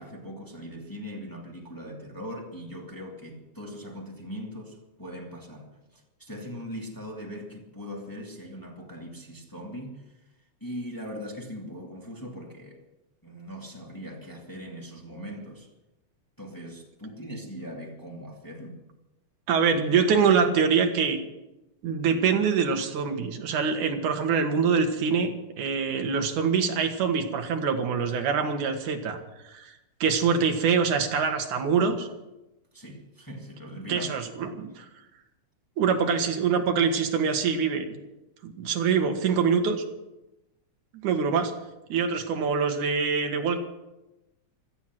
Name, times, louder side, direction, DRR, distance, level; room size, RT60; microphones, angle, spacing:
voice 1, 0.0-10.2 10.6-12.8 13.2-15.7 16.4-18.8 32.7-34.1 34.4-34.6, equal, 5° left, -1 dB, 2.1 m, -40 dB
voice 2, 19.5-21.2 21.8-29.2 29.4-29.8 30.0-32.1 33.9-34.8 35.8-38.0 38.4-39.8 41.0-41.5 41.9-43.6, right 6 dB, 85° right, 5 dB, 3.0 m, -24 dB
16.5 x 13.5 x 6.1 m, 0.96 s
omnidirectional pair, 3.4 m